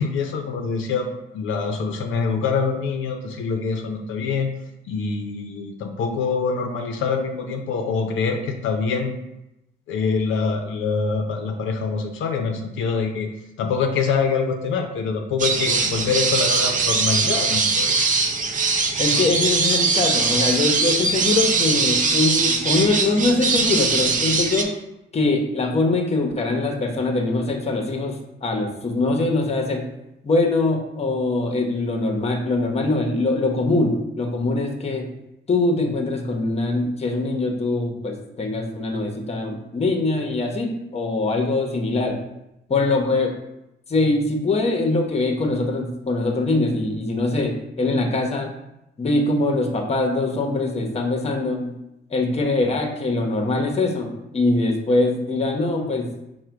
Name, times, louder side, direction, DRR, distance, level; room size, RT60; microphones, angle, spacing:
voice 1, 0.0-4.5 4.8-9.2 9.9-13.3 13.6-17.9, left 5 dB, 80° left, 3 dB, 0.5 m, -25 dB
sound 1, 15.4-24.6, right 4 dB, 40° right, 0.5 m, -21 dB
voice 2, 19.0-24.7 25.1-29.9 30.2-35.1 35.5-42.2 42.7-43.3 43.9-48.5 49.0-51.8 52.1-56.1, left 2 dB, 30° left, 3 dB, 0.8 m, -22 dB
4.9 x 2.2 x 4.4 m, 0.88 s
cardioid pair, 90°, 20 cm